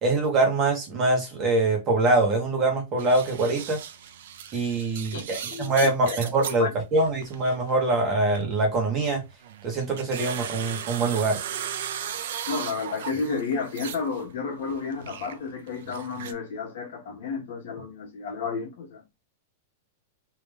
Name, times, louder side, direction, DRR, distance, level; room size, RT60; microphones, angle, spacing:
voice 1, 0.0-3.8 4.5-9.2 9.6-11.4, right 2 dB, 20° right, 1.3 m, -24 dB
sound 1, 3.0-6.6 7.0-8.5 9.0-14.3 14.5-16.3, right 9 dB, 60° right, 0.6 m, -37 dB
voice 2, 5.1-5.7 6.1-6.2 6.6-6.7 12.4-19.0, left 4 dB, 60° left, 1.5 m, -31 dB
3.4 x 3.0 x 3.4 m
supercardioid pair, 175°, 0 cm